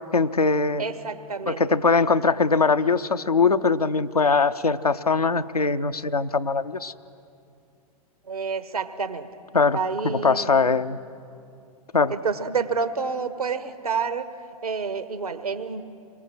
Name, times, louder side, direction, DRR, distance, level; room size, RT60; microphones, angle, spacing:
voice 1, 0.1-0.8 1.5-6.9 9.5-9.8 10.1-11.0 11.9-12.1, left 4 dB, 90° left, 7 dB, 0.6 m, -21 dB
voice 2, 0.8-1.6 8.2-9.3 9.7-10.7 12.1-14.3 14.6-15.8, right 5 dB, 80° right, 11 dB, 1.4 m, -28 dB
27.0 x 22.5 x 6.1 m, 2.6 s
figure-of-eight pair, 100°, 19 cm